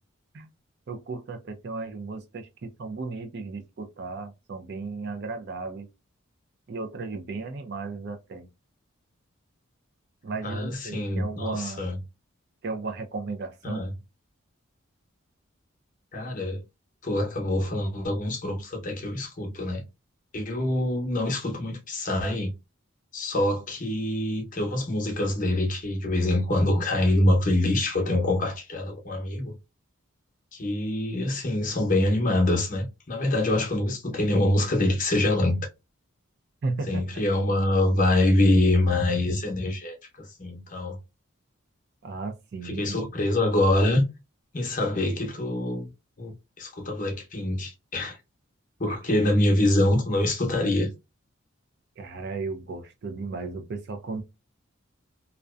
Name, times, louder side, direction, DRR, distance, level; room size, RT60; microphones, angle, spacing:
voice 1, 0.9-5.9 6.7-8.5 10.2-11.9 12.6-13.9 36.6-37.0 42.0-43.0 52.0-54.2, right 3 dB, 55° right, 0.4 m, -35 dB
voice 2, 10.4-12.0 13.6-13.9 16.1-16.6 17.0-19.8 20.3-22.5 23.1-29.5 30.5-35.7 36.9-41.0 42.6-44.1 44.5-45.9 46.2-48.2 48.8-50.9, left 1 dB, 40° left, 0.7 m, -25 dB
2.5 x 2.1 x 2.3 m
head